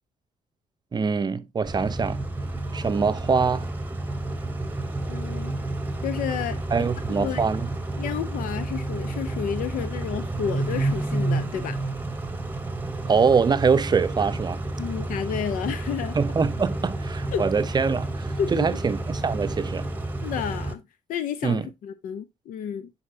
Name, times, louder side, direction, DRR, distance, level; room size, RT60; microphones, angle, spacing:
voice 1, 0.9-2.2 2.7-3.7 6.7-7.7 13.1-14.6 16.1-19.9 21.4-21.7, right 5 dB, 30° right, 0.6 m, -24 dB
Car / Idling / Accelerating revving vroom, 1.6-20.7, right 2 dB, 15° right, 0.9 m, -30 dB
voice 2, 5.1-5.5 6.0-6.9 7.2-7.4 8.0-11.8 14.8-16.2 17.3-17.4 18.4-18.7 20.2-20.8 21.1-22.9, left 8 dB, 80° left, 0.6 m, -31 dB
9.7 x 4.2 x 2.6 m
cardioid pair, 90°, 14 cm